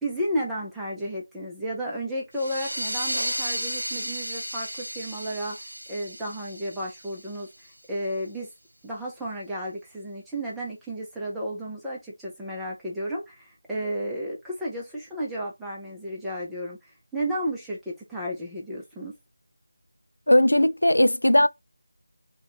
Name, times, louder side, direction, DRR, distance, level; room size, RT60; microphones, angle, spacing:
voice 1, 0.0-7.5 7.9-8.5 8.8-16.8 17.1-19.1, equal, 5° right, 0.8 m, -32 dB
sound 1, 2.3-7.7, right 1 dB, 85° right, 0.5 m, -33 dB
voice 2, 20.3-21.5, left 1 dB, 80° left, 0.4 m, -18 dB
3.0 x 2.5 x 4.0 m
figure-of-eight pair, 165°, 0 cm